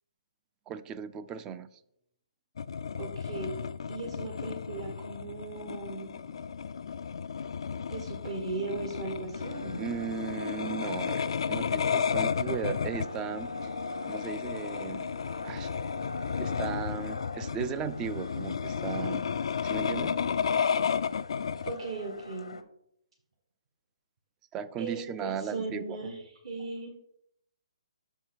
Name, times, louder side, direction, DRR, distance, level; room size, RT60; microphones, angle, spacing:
voice 1, 0.7-1.8 9.8-13.7 14.0-15.1 15.4-15.7 16.4-19.3 19.6-20.2 24.5-26.0, right 7 dB, 20° right, 13 dB, 0.4 m, -37 dB
sound 1, 2.6-21.8, left 6 dB, 65° left, 0.3 m, -33 dB
voice 2, 3.0-6.2 7.9-9.8 21.6-22.6 24.8-26.9, right 3 dB, 55° right, 2 dB, 1.4 m, -38 dB
sound 2, 9.3-22.6, left 2 dB, 90° left, 0.8 m, -43 dB
6.0 x 4.6 x 5.7 m, 0.74 s
figure-of-eight pair, 140°, 3 cm